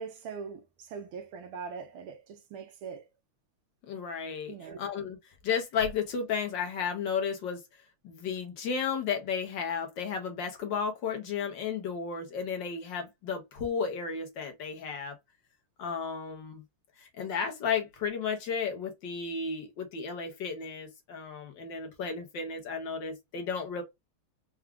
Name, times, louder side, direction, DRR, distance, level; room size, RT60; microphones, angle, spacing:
voice 1, 0.0-3.0 4.5-4.8, right 5 dB, 75° right, 1.6 m, -41 dB
voice 2, 3.9-5.2 5.4-7.6 8.0-15.1 15.8-16.6 17.0-23.8, left 6 dB, 65° left, 1.5 m, -33 dB
4.6 x 2.3 x 3.6 m
omnidirectional pair, 2.4 m